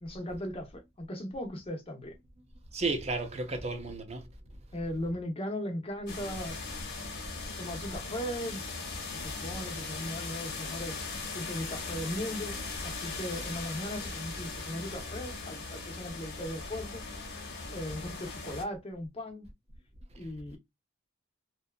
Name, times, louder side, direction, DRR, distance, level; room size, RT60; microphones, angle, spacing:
voice 1, 0.0-2.2 4.7-6.6 7.6-8.6 9.1-12.6 12.8-17.0 17.7-19.5 20.2-20.6, left 1 dB, 30° left, 0.6 m, -38 dB
voice 2, 2.7-4.3, right 3 dB, 30° right, 0.6 m, -33 dB
sound 1, 6.1-18.6, left 3 dB, 55° left, 0.8 m, -39 dB
2.6 x 2.3 x 2.2 m
head